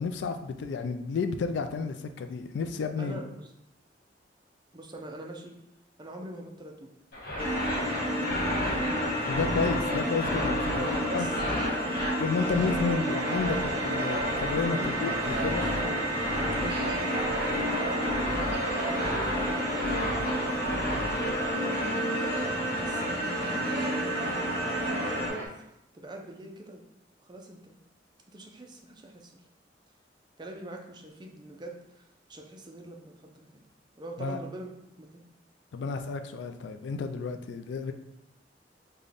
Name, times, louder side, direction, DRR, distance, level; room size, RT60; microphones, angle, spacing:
voice 1, 0.0-3.2 9.3-10.9 11.1-11.3 12.2-15.7 34.2-34.4 35.7-37.9, left 5 dB, 75° left, 8 dB, 0.3 m, -31 dB
voice 2, 3.0-3.5 4.7-5.6 6.0-6.9 7.7-7.9 10.7-11.8 12.5-12.7 14.7-15.0 15.3-17.4 17.7-20.4 21.5-23.0 23.6-24.1 24.7-26.8 27.2-27.7 28.3-29.4 30.4-33.6 34.0-34.7 35.0-35.3, right 2 dB, 25° right, 1 dB, 0.5 m, -44 dB
sound 1, 7.1-21.5, left 1 dB, 55° left, 1.1 m, -34 dB
sound 2, 7.4-25.3, equal, 10° left, 1.0 m, -30 dB
sound 3, 12.4-25.5, right 2 dB, 60° right, 0.7 m, -36 dB
3.9 x 2.2 x 3.4 m, 0.83 s
head